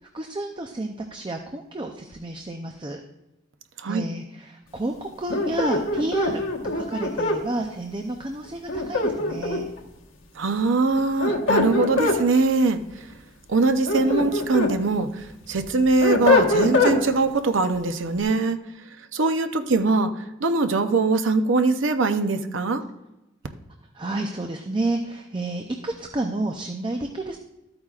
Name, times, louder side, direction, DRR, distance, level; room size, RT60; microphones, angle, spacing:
voice 1, 0.1-3.0 3.8-9.7 23.9-27.4, right 2 dB, 25° right, 4 dB, 0.5 m, -30 dB
sound 1, 5.3-7.4 8.7-9.8 11.0-12.2 13.6-14.7 15.2-17.0, left 2 dB, 90° left, 1.3 m, -22 dB
voice 2, 10.4-12.8 13.5-18.6 19.1-20.1 20.4-22.8, right 3 dB, 75° right, 7 dB, 0.7 m, -22 dB
13.0 x 8.7 x 2.4 m, 0.95 s
head